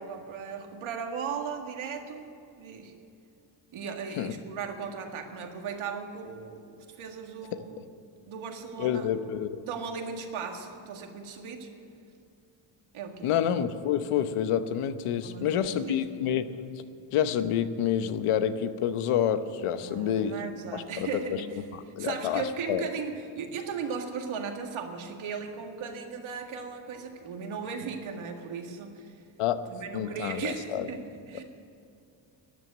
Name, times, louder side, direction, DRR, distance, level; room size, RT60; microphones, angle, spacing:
voice 1, 0.0-2.3 2.6-2.9 3.7-7.8 8.3-9.1 9.6-11.7 12.9-13.3 15.2-16.0 19.8-21.5 22.0-29.1 29.7-31.4, right 5 dB, 70° right, 3 dB, 2.0 m, -37 dB
voice 2, 8.8-9.6 13.2-16.6 17.1-20.4 20.7-21.4 21.7-22.8 29.4-29.7 29.9-30.9, left 9 dB, 85° left, 11 dB, 1.0 m, -28 dB
13.0 x 9.4 x 10.0 m, 2.5 s
cardioid pair, 105°, 50 cm